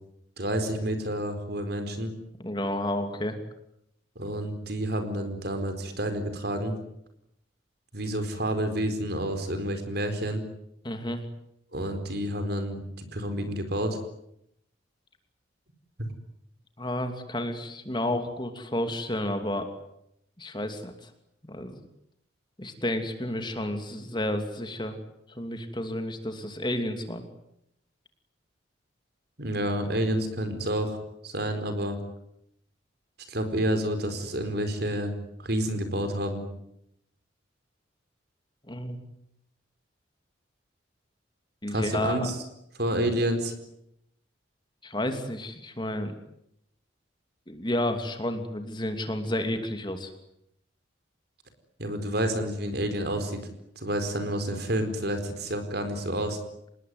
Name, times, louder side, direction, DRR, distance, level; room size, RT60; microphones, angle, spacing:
voice 1, 0.4-2.1 4.2-6.8 7.9-10.4 11.7-14.0 29.4-31.0 31.2-32.0 33.3-35.1 35.4-36.4 41.7-42.4 42.8-43.5 51.8-53.4 53.8-56.4, right 1 dB, 55° right, 8 dB, 4.6 m, -29 dB
voice 2, 2.4-3.4 10.8-11.2 16.8-19.7 20.4-21.1 21.4-21.7 22.6-25.0 25.3-27.2 38.7-39.0 41.6-42.3 44.8-46.1 47.5-50.1, left 1 dB, 25° left, 7 dB, 2.8 m, -31 dB
26.5 x 20.5 x 9.6 m, 0.78 s
head